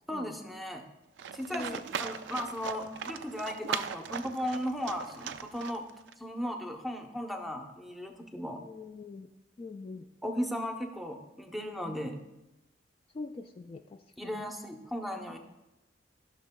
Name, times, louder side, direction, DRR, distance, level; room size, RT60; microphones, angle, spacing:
voice 1, 0.1-0.9 1.3-5.8 6.2-8.6 10.2-12.2 14.2-15.4, equal, ahead, 4 dB, 0.7 m, -36 dB
Livestock farm animals working animals, 1.2-6.1, right 7 dB, 75° right, 0.3 m, -39 dB
voice 2, 8.6-9.3 9.6-10.1 13.1-14.4, left 3 dB, 30° left, 6 dB, 0.3 m, -43 dB
14.5 x 6.2 x 2.2 m, 0.96 s
head